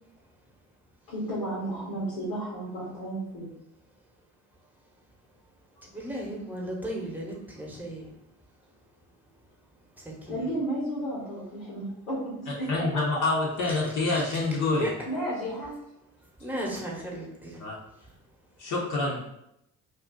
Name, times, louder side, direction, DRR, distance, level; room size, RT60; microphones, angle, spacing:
voice 1, 1.1-3.5 10.3-12.7 15.1-15.7, right 1 dB, 80° left, -7 dB, 1.1 m, -33 dB
voice 2, 1.6-1.9 5.8-8.1 10.0-10.5 14.1-14.4 14.8-14.9 16.4-17.6, right 1 dB, 5° right, -2 dB, 1.0 m, -36 dB
voice 3, 12.7-14.9 17.6-17.8 18.6-19.3, left 3 dB, 45° left, -3 dB, 0.8 m, -27 dB
2.6 x 2.3 x 3.7 m, 0.82 s
hypercardioid pair, 50°, 42 cm